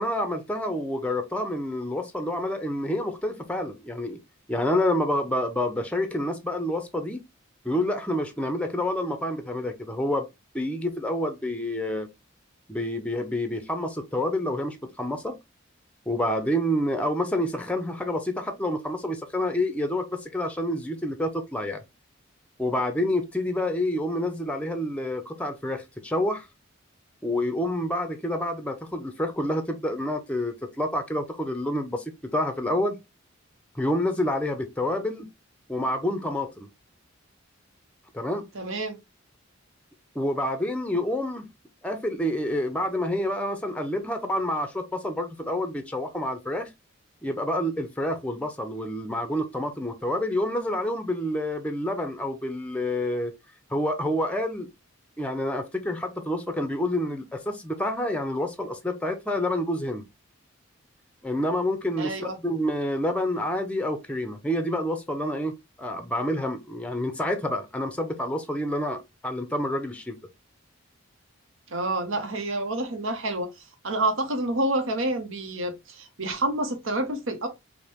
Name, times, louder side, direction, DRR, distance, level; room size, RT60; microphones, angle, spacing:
voice 1, 0.0-4.2 4.5-7.2 7.6-10.3 10.5-12.1 12.7-15.3 16.1-21.8 22.6-26.5 27.2-33.0 33.7-35.3 35.7-36.7 38.1-38.5 40.2-41.5 41.8-46.7 47.2-53.3 53.7-54.7 55.2-60.1 61.2-70.2, left 1 dB, 5° left, 0.5 m, -28 dB
voice 2, 38.5-39.0 62.0-62.4 71.7-77.5, right 2 dB, 75° right, 0.9 m, -28 dB
5.1 x 2.1 x 2.9 m
head